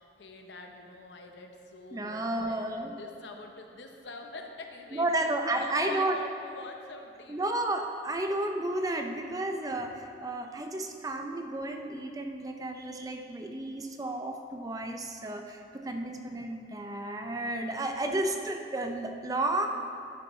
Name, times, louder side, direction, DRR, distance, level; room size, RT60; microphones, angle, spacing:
voice 1, 0.0-5.1 5.5-7.6, left 3 dB, 80° left, 3 dB, 0.8 m, -45 dB
voice 2, 1.9-2.9 4.9-6.2 7.3-19.7, right 2 dB, 20° right, 4 dB, 0.4 m, -32 dB
11.0 x 7.2 x 3.1 m, 2.5 s
head